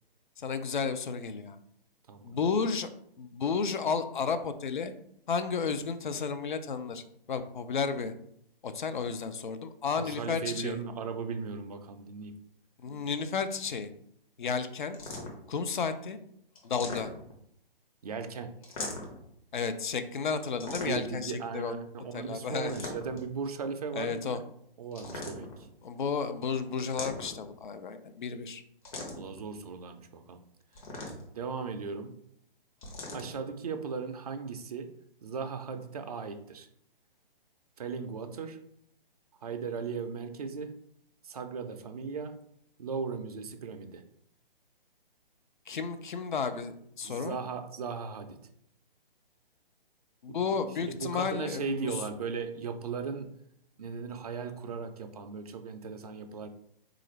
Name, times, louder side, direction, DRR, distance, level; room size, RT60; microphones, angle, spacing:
voice 1, 0.4-1.6 2.2-2.9 3.2-4.9 5.3-7.0 7.3-8.1 8.6-10.8 12.8-13.9 14.4-15.0 15.5-16.2 16.6-17.1 19.5-21.7 22.1-22.9 24.0-24.4 25.8-28.6 45.7-47.4 50.2-51.9, left 5 dB, 55° left, 10 dB, 0.5 m, -32 dB
voice 2, 2.1-2.4 10.0-12.3 18.0-18.8 20.6-24.4 24.8-25.7 29.1-30.4 31.3-32.2 33.1-34.9 35.2-36.7 37.8-38.6 39.4-40.7 41.2-42.4 42.8-44.0 47.0-48.4 50.3-53.3 53.8-56.5, right 5 dB, 40° right, 7 dB, 0.4 m, -37 dB
sound 1, 14.9-15.5 16.6-17.4 18.6-19.3 20.6-21.2 22.5-23.3 24.9-25.7 26.8-27.5 28.8-29.4 30.7-31.4 32.8-33.3, left 2 dB, 40° left, 0.9 m, -40 dB
3.8 x 2.5 x 3.1 m, 0.70 s
figure-of-eight pair, 135°, 29 cm